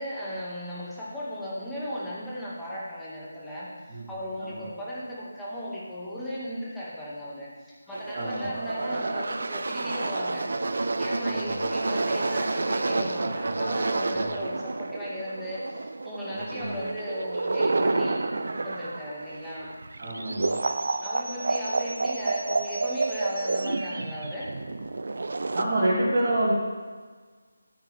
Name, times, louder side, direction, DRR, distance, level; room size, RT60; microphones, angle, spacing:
voice 1, 0.0-10.5 11.0-18.2 18.5-19.7 21.0-24.5, equal, 5° left, -10 dB, 2.2 m, -36 dB
sound 1, 7.9-25.6, right 3 dB, 60° right, 0.6 m, -29 dB
voice 2, 8.1-8.5 11.3-11.6 14.1-14.3 16.3-16.7 20.0-20.5 25.5-26.5, right 1 dB, 40° right, -9 dB, 2.6 m, -28 dB
14.0 x 8.1 x 3.6 m, 1.5 s
figure-of-eight pair, 160°, 0 cm